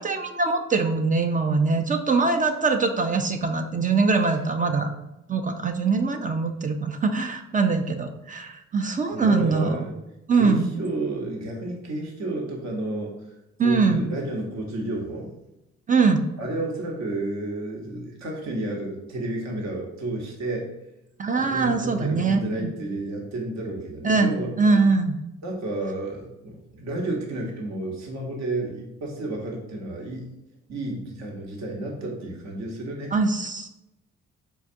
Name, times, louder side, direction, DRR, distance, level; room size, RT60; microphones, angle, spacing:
voice 1, 0.0-4.9 5.3-9.8 10.3-10.7 13.6-14.1 15.9-16.3 21.2-22.7 24.0-25.2 33.1-33.7, right 4 dB, 25° right, 6 dB, 0.3 m, -22 dB
voice 2, 9.1-9.9 10.3-13.1 13.6-15.3 16.4-20.7 21.3-24.5 25.4-30.3 30.7-33.1, right 2 dB, 55° right, 0 dB, 0.9 m, -31 dB
4.4 x 2.3 x 2.5 m, 0.93 s
supercardioid pair, 60°, 32 cm